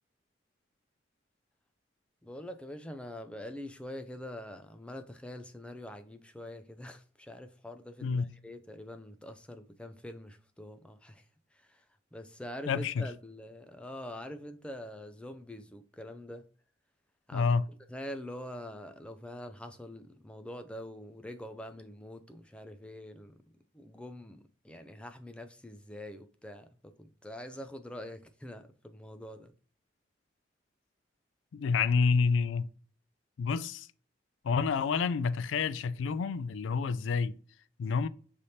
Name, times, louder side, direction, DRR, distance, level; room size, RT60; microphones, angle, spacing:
voice 1, 2.2-11.2 11.5-11.8 12.1-16.4 17.3-17.5 17.9-23.3 23.7-29.5, left 1 dB, 5° left, 0.4 m, -45 dB
voice 2, 8.0-8.3 12.7-13.1 17.3-17.7 31.5-32.7 33.4-33.9 34.4-37.4 37.8-38.1, left 5 dB, 85° left, 0.3 m, -28 dB
5.6 x 3.3 x 2.7 m
head